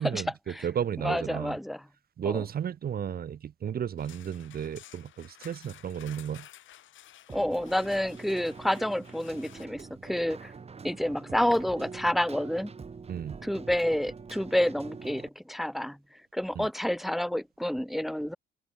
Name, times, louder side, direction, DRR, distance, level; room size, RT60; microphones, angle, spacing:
voice 1, 0.0-1.6 2.2-6.5 13.1-13.4 16.5-16.7, right 8 dB, 50° right, 1.0 m, -33 dB
voice 2, 1.0-1.8 2.3-2.4 7.3-10.5 10.8-12.7 13.4-16.0 16.3-18.4, left 1 dB, ahead, 0.7 m, -29 dB
sound 1, 4.0-9.7, left 12 dB, 75° left, 3.8 m, -53 dB
Keyboard (musical), 7.3-15.3, right 5 dB, 30° right, 1.4 m, -45 dB
cardioid pair, 90°, 20 cm